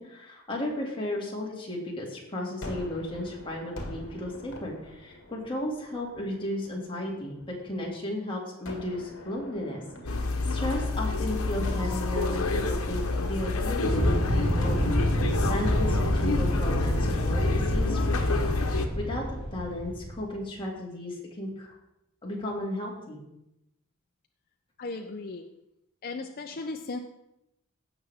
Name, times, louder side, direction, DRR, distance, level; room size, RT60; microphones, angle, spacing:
voice 1, 0.0-7.4 7.6-10.2 10.5-21.7 22.2-23.2, left 1 dB, 25° left, -2 dB, 2.3 m, -34 dB
Gunshot gunfire, 2.6-7.7 8.6-11.1 11.6-14.1 14.6-19.8, left 1 dB, 60° left, 1.9 m, -45 dB
sound 1, 10.1-18.9, left 3 dB, 90° left, 1.0 m, -28 dB
sound 2, 13.8-20.3, equal, 75° right, 3.9 m, -28 dB
voice 2, 24.8-25.5 26.0-27.0, left 3 dB, 45° left, 4 dB, 0.6 m, -36 dB
16.5 x 6.0 x 3.5 m, 0.86 s
head